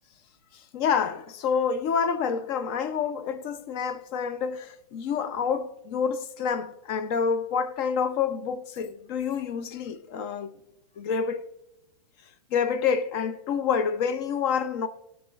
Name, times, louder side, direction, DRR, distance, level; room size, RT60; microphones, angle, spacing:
voice 1, 0.7-10.5 11.0-11.4 12.5-14.9, left 6 dB, 40° left, 0.6 m, -28 dB
16.5 x 6.0 x 2.4 m
hypercardioid pair, 140°, 19 cm